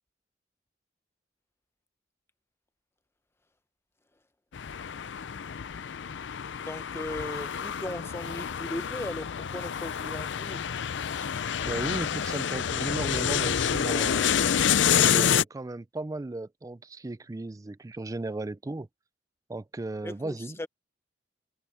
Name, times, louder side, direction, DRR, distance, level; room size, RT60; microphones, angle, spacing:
sound 1, 4.5-15.4, left 8 dB, 75° left, 0.5 m, -28 dB
voice 1, 6.6-10.7 20.0-20.7, left 1 dB, 15° left, 0.9 m, -38 dB
voice 2, 11.6-14.3 14.8-18.9 19.5-20.6, right 2 dB, 20° right, 0.4 m, -35 dB
head